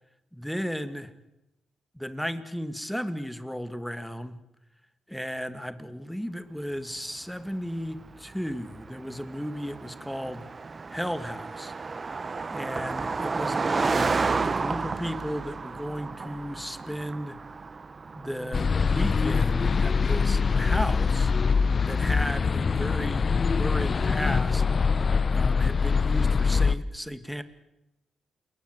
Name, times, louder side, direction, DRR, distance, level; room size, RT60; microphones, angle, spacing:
voice 1, 0.3-1.1 1.9-4.3 5.1-10.5 10.9-11.7 12.5-14.1 14.4-17.4 18.1-21.3 21.8-24.6 24.9-25.0 25.3-27.4, equal, ahead, 12 dB, 2.2 m, -34 dB
Car passing by, 7.4-21.1, right 4 dB, 35° right, 1.1 m, -33 dB
sound 1, 18.5-26.8, left 5 dB, 45° left, 1.0 m, -23 dB
28.5 x 21.5 x 8.1 m, 0.88 s
cardioid pair, 80°, 0 cm